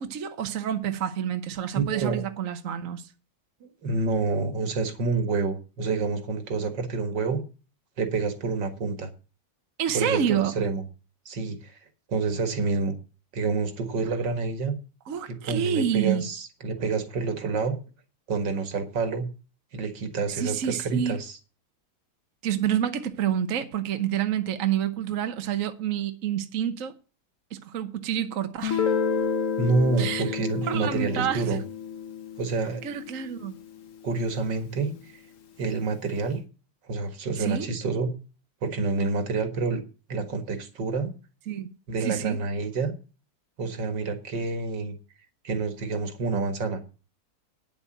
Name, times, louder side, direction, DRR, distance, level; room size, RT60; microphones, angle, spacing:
voice 1, 0.0-3.1 9.8-10.7 15.1-16.3 20.3-21.2 22.4-26.9 27.5-28.9 30.0-30.3 30.6-31.6 32.8-33.6 37.4-37.7 41.5-41.7 42.0-42.4, right 9 dB, 50° right, 1.1 m, -28 dB
voice 2, 1.7-2.3 3.6-7.4 8.0-9.1 9.9-10.8 11.3-11.8 12.1-13.0 13.3-14.8 15.3-17.8 18.3-19.3 19.7-21.4 29.6-31.6 32.4-32.8 34.0-34.9 35.6-36.4 36.9-38.1 38.6-39.8 40.1-41.1 41.9-42.9 43.6-44.9 45.4-46.8, right 4 dB, 70° right, 2.4 m, -28 dB
Guitar, 28.6-34.1, left 6 dB, 45° left, 1.4 m, -30 dB
9.8 x 7.3 x 7.6 m
omnidirectional pair, 2.0 m